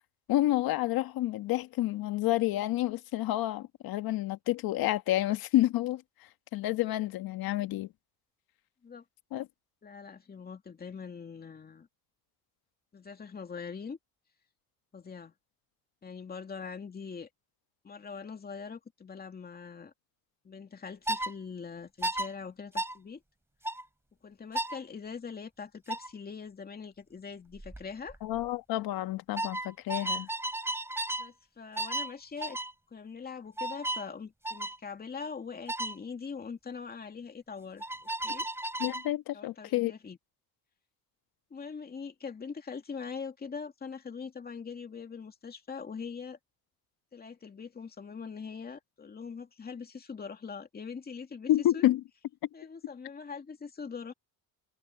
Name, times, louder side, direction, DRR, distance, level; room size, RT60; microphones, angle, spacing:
voice 1, 0.3-6.0 6.5-7.9 9.3-9.5 28.2-30.3 38.8-39.9 51.5-52.0, left 15 dB, 70° left, 1.6 m, -29 dB
voice 2, 9.8-11.9 12.9-14.0 14.9-15.3 16.0-17.3 17.8-19.9 20.4-23.2 24.2-28.2 31.2-32.6 32.9-38.5 39.3-40.2 41.5-46.4 47.1-51.8 52.5-54.1, left 5 dB, 25° left, 2.4 m, -42 dB
sound 1, 21.1-21.3 22.0-22.3 22.8-22.9 23.6-23.8 24.5-24.8 25.9-26.1 27.6-27.8 28.1-28.4 29.4-31.3 31.8-32.1 32.4-32.7 33.6-34.0 34.4-34.8 35.7-35.9 37.8-39.1, right 1 dB, 5° right, 3.8 m, -34 dB
cardioid pair, 130°, 37 cm